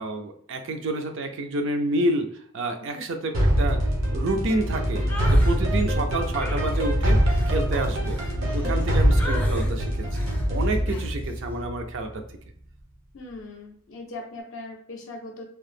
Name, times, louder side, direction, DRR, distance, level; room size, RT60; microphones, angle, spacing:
voice 1, 0.0-2.3 2.5-3.8 4.1-7.2 7.5-8.2 8.5-10.1 10.5-12.1, right 2 dB, 65° right, 5 dB, 0.4 m, -28 dB
sound 1, 3.3-12.2, equal, 85° right, 0.9 m, -23 dB
sound 2, 5.1-5.6 6.4-8.8 9.2-9.7 10.1-10.5 10.9-11.1, left 1 dB, 10° left, 0.4 m, -38 dB
voice 2, 8.4-9.0 10.8-11.0 13.1-15.4, left 2 dB, 70° left, 1 dB, 0.5 m, -40 dB
2.9 x 2.0 x 3.2 m, 0.62 s
head